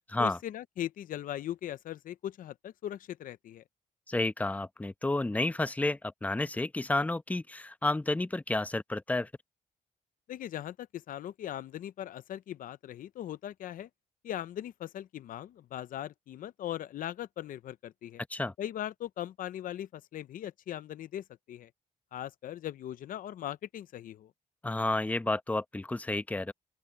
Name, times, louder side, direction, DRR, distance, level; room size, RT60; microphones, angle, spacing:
voice 1, 0.2-3.6 10.3-13.9 14.2-18.2 18.6-21.7 22.1-24.3, left 11 dB, 80° left, 0.7 m, -39 dB
voice 2, 4.1-9.3 18.3-18.5 24.6-26.5, left 2 dB, 10° left, 0.8 m, -31 dB
open air
cardioid pair, 105°, 14 cm